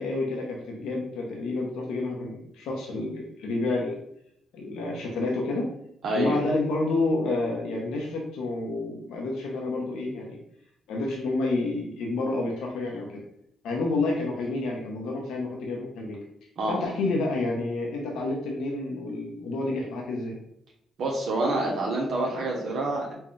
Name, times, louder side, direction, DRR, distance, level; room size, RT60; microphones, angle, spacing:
voice 1, 0.0-4.0 4.5-5.6 6.2-10.4 10.9-13.2 13.6-16.2 16.7-20.4, left 2 dB, 85° left, -1 dB, 0.7 m, -29 dB
voice 2, 6.0-6.4 16.6-16.8 21.0-23.1, right 2 dB, 65° right, -2 dB, 0.8 m, -27 dB
4.4 x 2.2 x 3.2 m, 0.73 s
cardioid pair, 90°, 0 cm